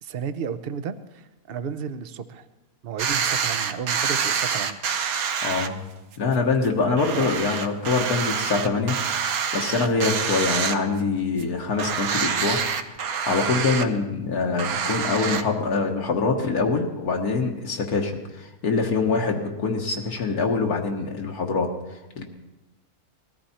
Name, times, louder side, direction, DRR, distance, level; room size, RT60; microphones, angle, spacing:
voice 1, 0.0-2.5 2.8-4.8 6.8-7.3, right 7 dB, 50° right, 12 dB, 0.8 m, -33 dB
sound 1, 3.0-5.7 6.1-6.2 6.6-6.7 7.0-11.1 11.4-11.5 11.8-13.8 14.6-15.4, right 7 dB, 70° right, 1.3 m, -26 dB
voice 2, 5.4-5.9 6.2-8.9 9.5-12.6 12.9-22.2, left 4 dB, 75° left, 1 dB, 1.8 m, -24 dB
20.0 x 13.5 x 4.3 m, 1.1 s
omnidirectional pair, 1.6 m